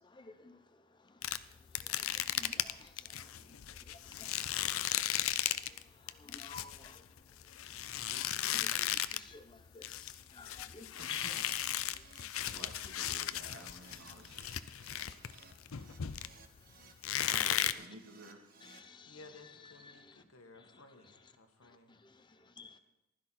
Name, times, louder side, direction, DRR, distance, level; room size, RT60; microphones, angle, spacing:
voice 1, 0.0-0.6 1.0-1.2 1.7-3.6 3.9-4.4 4.7-5.2 5.7-7.1 8.0-11.3 11.8-12.3 12.5-12.7 18.6-19.2 19.6-20.2 20.6-20.8 21.9-22.8, left 3 dB, 20° left, 0.8 m, -54 dB
sound 1, 1.2-5.8 6.1-9.3 9.6-16.6 17.0-17.7, left 12 dB, 70° left, 0.5 m, -36 dB
voice 2, 11.0-11.5 11.7-12.1 12.4-14.5 17.3-18.4, right 1 dB, 75° right, 2.8 m, -53 dB
Keyboard (musical), 11.3-18.8, right 4 dB, 45° right, 1.4 m, -60 dB
voice 3, 19.1-22.0, left 3 dB, 90° left, 1.9 m, -57 dB
15.5 x 12.5 x 4.3 m
head